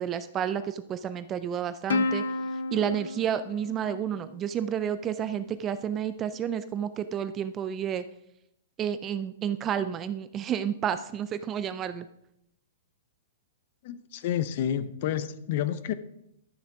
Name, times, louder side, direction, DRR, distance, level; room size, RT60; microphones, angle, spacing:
voice 1, 0.0-2.2 2.7-8.0 8.8-12.1, right 9 dB, 15° right, 0.3 m, -30 dB
Plucked string instrument, 1.9-4.6, left 3 dB, 85° left, 0.9 m, -31 dB
voice 2, 13.8-15.9, left 10 dB, 40° left, 0.6 m, -29 dB
11.5 x 7.0 x 4.8 m
hypercardioid pair, 175°, 0 cm